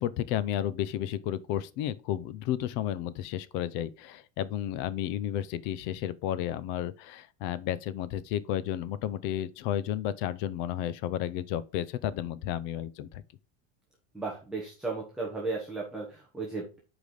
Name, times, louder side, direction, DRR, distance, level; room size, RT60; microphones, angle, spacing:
voice 1, 0.0-13.2, left 11 dB, 35° left, 0.5 m, -32 dB
voice 2, 14.1-16.8, right 3 dB, ahead, 1.2 m, -35 dB
8.4 x 5.0 x 3.9 m
supercardioid pair, 175°, 32 cm